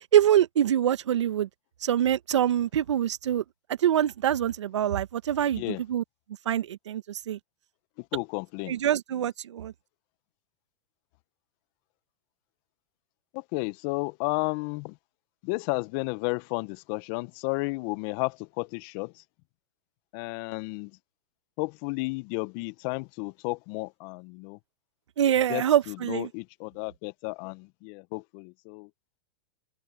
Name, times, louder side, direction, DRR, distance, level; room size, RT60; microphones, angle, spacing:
voice 1, 0.1-1.5 1.8-3.4 3.8-6.0 6.4-7.4 8.7-9.7 25.2-26.3, right 10 dB, 75° right, 1.5 m, -24 dB
voice 2, 8.1-8.7 13.3-14.9 15.4-19.1 20.1-20.9 21.6-24.6 25.5-28.9, left 27 dB, 50° left, 1.0 m, -32 dB
open air
hypercardioid pair, 115°, 15 cm